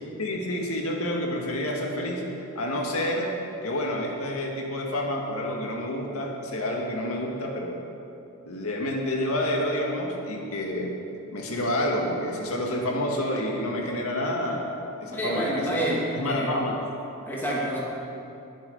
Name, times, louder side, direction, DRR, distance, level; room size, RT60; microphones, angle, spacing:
voice 1, 0.2-2.3 2.6-3.4 3.6-7.8 8.5-11.0 11.3-14.7 15.0-15.8 16.1-16.8, left 1 dB, 90° left, 0 dB, 1.9 m, -28 dB
voice 2, 15.1-16.5 17.3-17.8, right 1 dB, 10° left, -6 dB, 2.7 m, -28 dB
21.0 x 7.2 x 5.5 m, 2.8 s
head